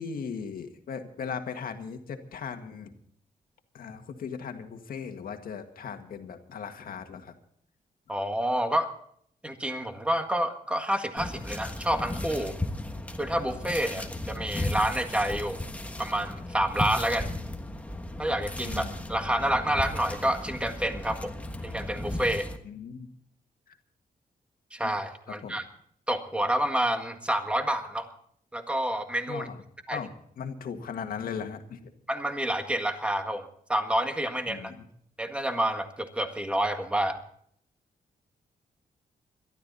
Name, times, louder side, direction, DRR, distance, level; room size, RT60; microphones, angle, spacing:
voice 1, 0.0-2.9 3.7-7.3 14.0-14.1 18.6-19.0 22.6-23.1 23.7-23.8 25.4-25.6 29.3-29.6 29.9-30.1 30.4-31.9 34.5-34.9, left 6 dB, 70° left, 6 dB, 1.8 m, -38 dB
voice 2, 8.1-8.9 9.4-12.5 13.2-15.6 16.0-17.3 18.2-21.3 21.6-22.5 24.7-25.6 26.1-28.1 28.5-29.5 29.9-30.0 32.1-34.7 35.2-37.2, right 1 dB, 5° right, 6 dB, 1.7 m, -28 dB
sound 1, 11.2-22.6, left 1 dB, 10° left, 1.4 m, -35 dB
22.0 x 13.0 x 4.1 m, 0.65 s
wide cardioid pair, 135°, 15 cm